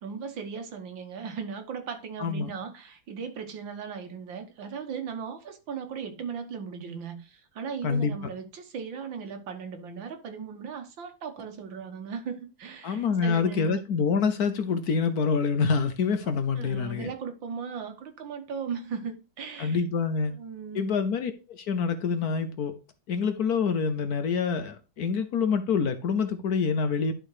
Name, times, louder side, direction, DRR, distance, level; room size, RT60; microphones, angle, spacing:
voice 1, 0.0-13.8 16.2-19.8 20.3-20.9, right 6 dB, 75° right, 2.0 m, -37 dB
voice 2, 2.2-2.5 7.8-8.1 12.8-17.1 19.6-20.3 20.7-22.7 23.1-27.1, left 5 dB, 60° left, 1.1 m, -26 dB
11.0 x 3.9 x 4.8 m
omnidirectional pair, 2.1 m